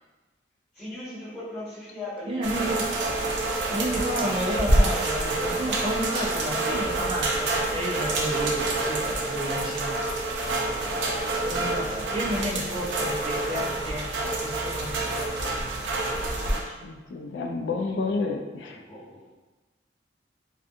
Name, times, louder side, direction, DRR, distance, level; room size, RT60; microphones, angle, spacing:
voice 1, 0.7-2.5 3.6-3.8 10.6-12.4 16.0-16.7 18.6-19.3, left 1 dB, 5° left, -13 dB, 1.4 m, -41 dB
voice 2, 2.3-2.8 3.7-10.0 11.4-15.2, equal, 30° right, -3 dB, 0.4 m, -31 dB
sound 1, 2.4-16.6, right 2 dB, 90° right, 0.4 m, -27 dB
voice 3, 16.8-18.8, left 3 dB, 70° left, 2 dB, 0.3 m, -30 dB
2.5 x 2.3 x 2.5 m, 1.2 s
head